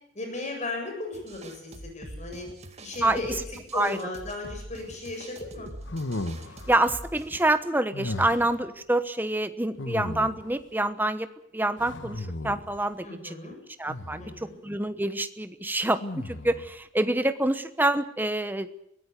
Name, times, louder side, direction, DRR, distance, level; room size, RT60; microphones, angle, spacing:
voice 1, 0.1-2.5 2.8-5.7 13.0-13.6 14.2-14.6, left 2 dB, 35° left, 3 dB, 7.8 m, -36 dB
sound 1, 1.1-7.4, right 1 dB, 35° right, 2.2 m, -44 dB
sound 2, 5.9-6.8 7.9-8.6 9.8-10.6 11.8-12.8 13.9-14.4 16.0-16.7, left 2 dB, 65° left, 1.3 m, -35 dB
voice 2, 6.7-11.3 11.5-13.3 13.8-18.7, right 1 dB, 10° right, 10 dB, 1.0 m, -27 dB
23.5 x 16.5 x 8.3 m, 0.78 s
head